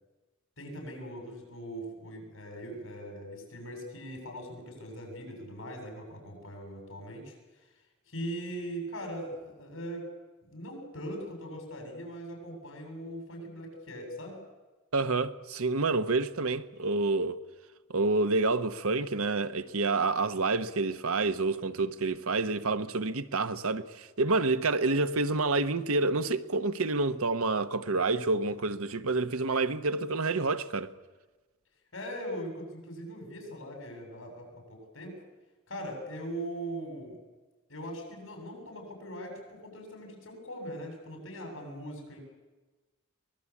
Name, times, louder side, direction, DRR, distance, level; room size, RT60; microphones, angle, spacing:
voice 1, 0.6-7.7 8.1-10.1 10.4-14.4 31.9-35.2 35.7-37.2 37.7-42.2, equal, 70° left, 7.6 m, -40 dB
voice 2, 14.9-17.4 17.9-30.9, right 3 dB, 90° right, 1.1 m, -28 dB
23.5 x 20.0 x 8.5 m
head